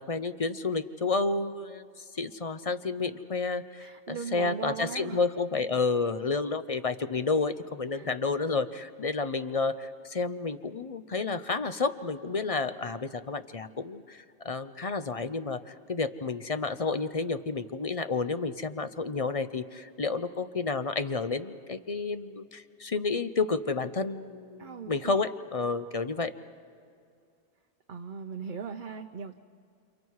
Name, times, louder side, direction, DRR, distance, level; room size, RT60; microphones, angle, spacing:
voice 1, 0.0-26.3, left 4 dB, 35° left, 11 dB, 0.7 m, -30 dB
voice 2, 3.8-5.2 7.9-8.1 24.6-25.3 27.9-29.4, right 6 dB, 50° right, 5 dB, 0.8 m, -39 dB
29.0 x 28.5 x 4.7 m, 2.4 s
omnidirectional pair, 1.2 m